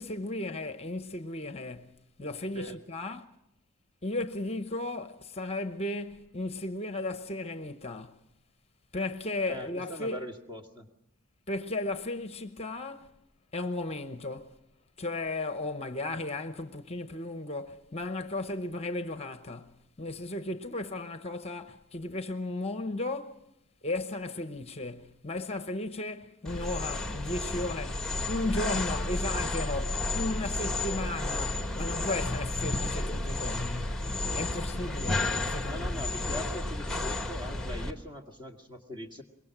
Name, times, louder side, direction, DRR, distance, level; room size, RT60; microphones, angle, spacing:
voice 1, 0.0-3.2 4.0-8.2 8.9-10.3 11.5-13.1 13.5-14.6 15.0-23.4 23.8-34.1 34.3-36.0, left 2 dB, 30° left, 0.9 m, -35 dB
voice 2, 9.4-10.9 35.6-39.2, equal, 20° right, 2.0 m, -41 dB
sound 1, 26.4-37.9, left 2 dB, 5° left, 1.5 m, -32 dB
24.5 x 22.0 x 6.0 m
head